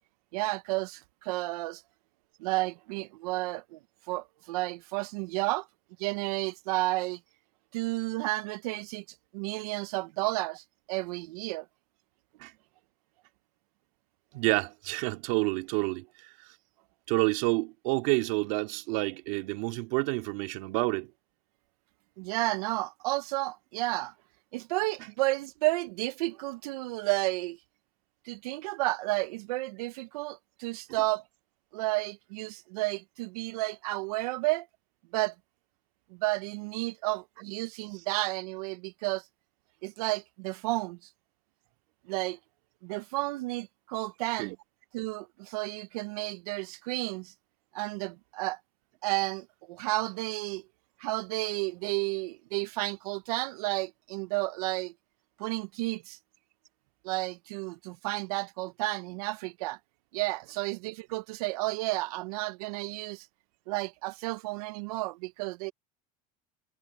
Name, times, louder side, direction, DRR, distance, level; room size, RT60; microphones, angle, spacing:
voice 1, 0.3-1.8 2.4-3.8 4.1-5.7 6.0-7.2 7.7-9.0 9.3-11.6 22.2-24.1 24.5-27.6 28.2-31.2 31.7-34.7 35.1-35.3 36.1-39.2 39.8-41.0 42.1-42.4 42.8-44.6 44.9-47.3 47.7-48.6 49.0-50.6 51.0-54.9 55.4-56.2 57.0-59.8 60.1-63.3 63.7-65.7, right 21 dB, 90° right, 0.8 m, -32 dB
voice 2, 14.3-16.0 17.1-21.1 44.4-44.5, right 25 dB, 65° right, 2.6 m, -29 dB
cardioid pair, 160°, 19 cm